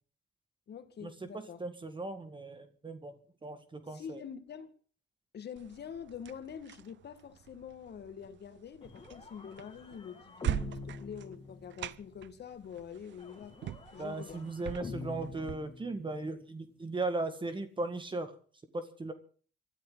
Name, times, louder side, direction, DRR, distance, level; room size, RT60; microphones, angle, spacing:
voice 1, 0.7-1.6 3.9-4.7 5.3-14.5, left 7 dB, 55° left, 1.9 m, -46 dB
voice 2, 1.6-3.1 3.4-4.2 14.0-18.3 18.7-19.1, right 2 dB, 25° right, 1.9 m, -37 dB
sound 1, 5.6-15.6, right 12 dB, 65° right, 0.7 m, -43 dB
sound 2, 8.8-12.1 13.2-16.4, left 4 dB, 30° left, 2.4 m, -46 dB
24.5 x 13.0 x 4.0 m
cardioid pair, 90°, 20 cm